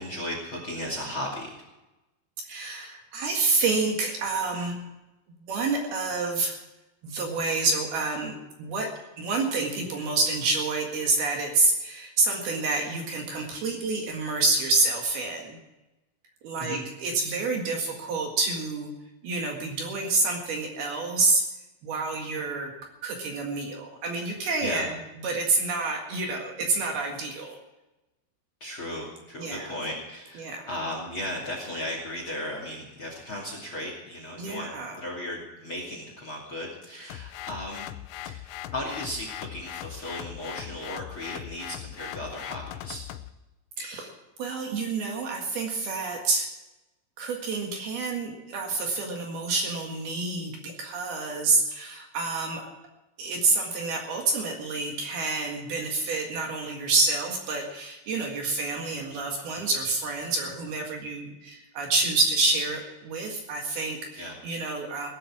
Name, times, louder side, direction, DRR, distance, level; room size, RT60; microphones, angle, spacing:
voice 1, 0.0-1.5 16.6-16.8 24.6-24.9 28.6-37.9 38.2-38.4 38.7-43.0 64.2-64.3, left 1 dB, 35° left, 1 dB, 2.5 m, -36 dB
voice 2, 2.5-4.8 5.3-6.6 7.0-8.9 9.2-15.6 16.4-18.9 19.2-21.4 21.8-22.7 23.0-27.6 29.4-29.7 30.4-30.6 34.4-35.0 43.8-44.1 44.4-46.5 47.2-52.6 53.2-65.1, right 3 dB, 60° right, 1 dB, 3.4 m, -28 dB
sound 1, 37.1-43.3, left 13 dB, 85° left, 3.2 m, -40 dB
18.0 x 11.5 x 6.1 m, 1.0 s
omnidirectional pair, 5.7 m